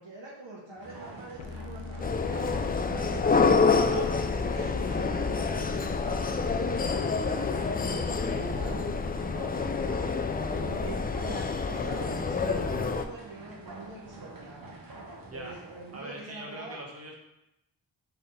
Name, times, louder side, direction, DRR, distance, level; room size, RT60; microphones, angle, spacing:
voice 1, 0.0-3.4 3.9-6.1 6.5-9.0 9.3-10.0 10.5-14.7 15.3-16.8, right 3 dB, 70° right, -3 dB, 1.2 m, -43 dB
sound 1, 0.8-16.1, right 2 dB, 45° right, 1.0 m, -47 dB
sound 2, 1.4-9.4, left 5 dB, 90° left, 0.5 m, -41 dB
sound 3, 2.0-13.0, left 4 dB, 20° left, 0.3 m, -28 dB
voice 2, 15.9-17.2, right 1 dB, 30° right, -2 dB, 1.3 m, -42 dB
3.6 x 3.5 x 4.1 m, 0.84 s
cardioid pair, 40°, 46 cm